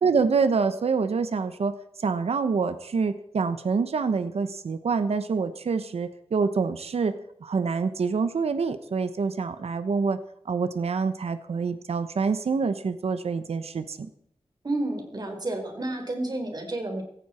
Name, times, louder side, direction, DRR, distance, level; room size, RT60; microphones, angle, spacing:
voice 1, 0.0-1.7 2.0-7.1 7.4-10.2 10.4-14.1, right 5 dB, 80° right, 11 dB, 1.1 m, -26 dB
voice 2, 14.6-17.0, right 2 dB, 40° right, 4 dB, 4.2 m, -30 dB
18.0 x 14.5 x 4.4 m, 0.72 s
wide cardioid pair, 110°, 10 cm